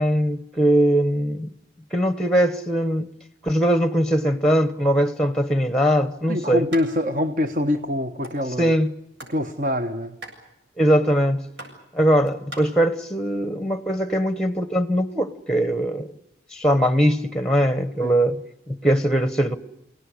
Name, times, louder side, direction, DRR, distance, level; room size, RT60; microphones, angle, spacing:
voice 1, 0.0-1.5 1.9-3.1 3.4-6.7 8.6-8.9 10.8-11.4 11.9-16.1 16.5-18.4 18.7-19.6, equal, 5° left, 1.0 m, -21 dB
voice 2, 6.3-8.7 9.3-10.2 18.0-18.2, left 1 dB, 45° right, 1.1 m, -25 dB
sound 1, 6.7-6.9 7.2-7.3 7.5-8.4 8.9-9.4 9.7-12.6, right 1 dB, 75° right, 7.5 m, -40 dB
28.0 x 17.5 x 9.7 m
head